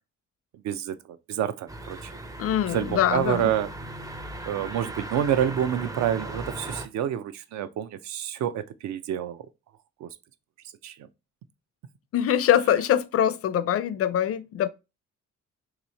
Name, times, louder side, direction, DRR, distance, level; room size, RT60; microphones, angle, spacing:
voice 1, 0.6-1.0 1.3-2.1 2.7-3.7 4.5-9.4 10.0-10.1 10.8-10.9, right 10 dB, 65° right, 0.5 m, -28 dB
sound 1, 1.7-6.9, right 1 dB, 10° right, 0.4 m, -38 dB
voice 2, 2.4-3.5 12.1-14.7, left 10 dB, 50° left, 0.4 m, -23 dB
3.0 x 2.7 x 4.0 m
cardioid pair, 90°, 30 cm